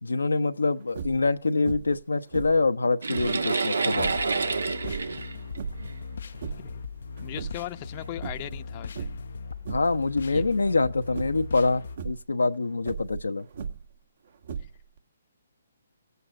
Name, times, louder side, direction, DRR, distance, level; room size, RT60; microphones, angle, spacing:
voice 1, 0.0-4.1 9.7-13.5, left 3 dB, 85° left, 0.9 m, -25 dB
sound 1, 0.9-1.3 1.6-2.0 2.3-3.5 3.9-4.3 4.8-5.9 6.3-6.8 7.2-7.9 8.2-8.6 8.9-9.3 9.6-10.0 10.3-10.7 11.1-11.5 11.9-12.2 12.8-14.0 14.4-15.0, right 6 dB, 60° right, 1.6 m, -37 dB
sound 2, 3.0-6.4 7.2-7.3 7.9-8.1, right 4 dB, 80° right, 1.4 m, -28 dB
sound 3, 3.9-12.0, left 5 dB, 65° left, 0.6 m, -40 dB
voice 2, 7.2-9.1 10.3-10.6 14.6-14.7, left 13 dB, 35° left, 0.8 m, -39 dB
17.0 x 8.1 x 6.2 m
hypercardioid pair, 140°, 0 cm